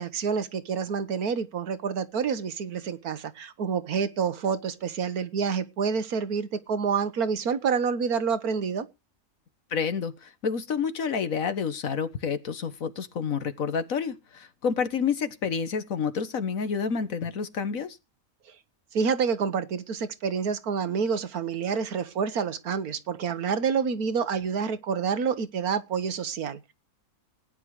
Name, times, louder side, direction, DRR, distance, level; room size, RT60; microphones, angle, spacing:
voice 1, 0.0-8.9 18.9-26.7, right 6 dB, 85° right, 1.7 m, -28 dB
voice 2, 9.7-18.0, left 6 dB, 65° left, 1.7 m, -29 dB
17.5 x 9.8 x 4.9 m
omnidirectional pair, 1.5 m